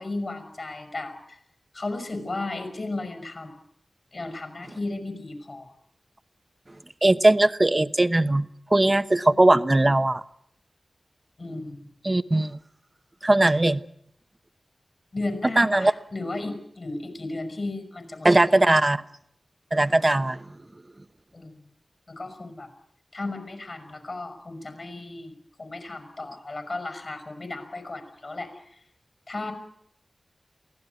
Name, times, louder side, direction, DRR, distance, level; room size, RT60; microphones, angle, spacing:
voice 1, 0.0-1.4 1.7-3.5 4.1-5.7 11.4-11.9 15.1-18.7 21.3-21.5 22.1-22.7 23.1-28.5 29.3-29.5, left 2 dB, 55° left, 8 dB, 5.7 m, -34 dB
voice 2, 7.0-10.2 12.0-12.6 13.2-13.8 15.6-15.9 18.2-19.0 19.7-20.4, right 2 dB, 30° right, 13 dB, 1.0 m, -20 dB
23.5 x 16.5 x 9.4 m, 0.73 s
cardioid pair, 45°, 0 cm